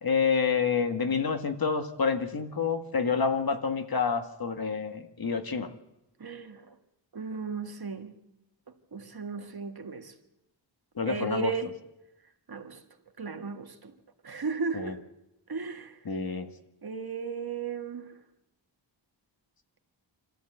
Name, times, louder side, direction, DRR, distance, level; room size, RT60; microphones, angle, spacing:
voice 1, 0.0-5.7 10.9-11.5 14.7-14.9 16.0-16.5, left 5 dB, 50° left, 1.6 m, -28 dB
voice 2, 6.2-6.8 7.1-8.2 8.9-10.1 11.1-11.7 12.5-12.8 13.2-13.9 14.2-15.0 15.5-16.0 16.8-18.1, right 5 dB, 55° right, 1.8 m, -35 dB
26.5 x 13.5 x 8.0 m
wide cardioid pair, 110°, 45 cm